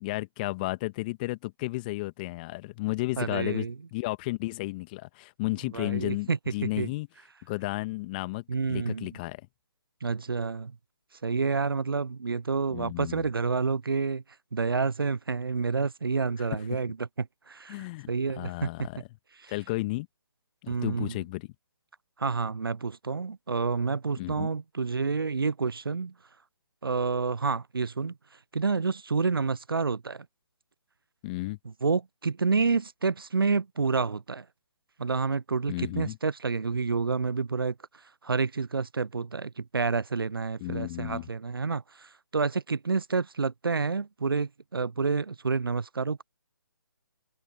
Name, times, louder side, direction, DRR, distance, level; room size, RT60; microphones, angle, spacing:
voice 1, 0.0-7.1 7.5-9.4 12.7-13.2 17.7-18.1 18.3-19.0 19.5-20.1 20.6-21.5 24.2-24.5 31.2-31.6 35.7-36.2 40.6-41.3, left 21 dB, 25° left, 1.4 m, -33 dB
voice 2, 3.2-3.7 5.7-6.9 8.5-9.2 10.0-10.8 11.2-14.2 14.5-18.9 19.4-19.5 20.7-21.2 22.2-26.1 26.8-28.2 28.5-30.3 31.6-34.5 35.0-37.8 38.2-46.2, right 4 dB, 70° right, 0.5 m, -29 dB
figure-of-eight pair, 140°, 12 cm